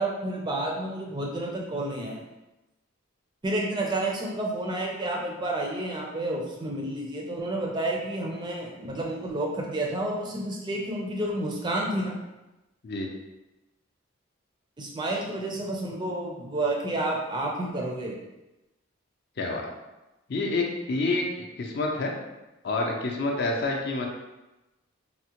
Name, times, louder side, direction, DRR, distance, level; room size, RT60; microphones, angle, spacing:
voice 1, 0.0-2.2 3.4-12.2 14.8-18.2, right 1 dB, 20° right, -1 dB, 0.4 m, -30 dB
voice 2, 19.4-19.7 20.3-21.3 21.6-22.1 22.6-24.1, left 2 dB, 50° left, 1 dB, 0.4 m, -28 dB
3.5 x 2.1 x 2.8 m, 1.0 s
head